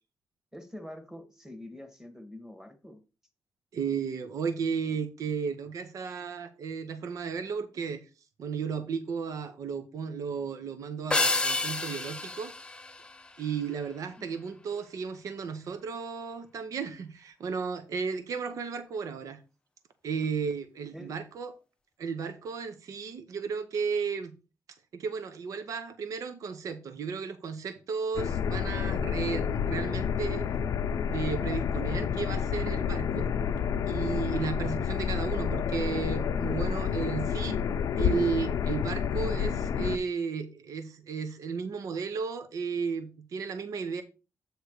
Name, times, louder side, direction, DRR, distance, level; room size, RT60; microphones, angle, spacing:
voice 1, 0.5-3.0 14.1-14.3 20.9-21.1, left 1 dB, 10° right, 1.5 m, -45 dB
voice 2, 3.7-8.0 8.4-12.5 13.4-19.4 20.0-21.5 22.0-24.4 24.9-30.5 31.1-33.3 33.9-37.6 38.0-44.0, right 5 dB, 70° right, 0.8 m, -34 dB
sound 1, 11.1-13.7, left 2 dB, 15° left, 0.5 m, -30 dB
sound 2, 28.2-40.0, left 7 dB, 75° left, 0.6 m, -29 dB
8.1 x 3.2 x 6.4 m
cardioid pair, 110°, 6 cm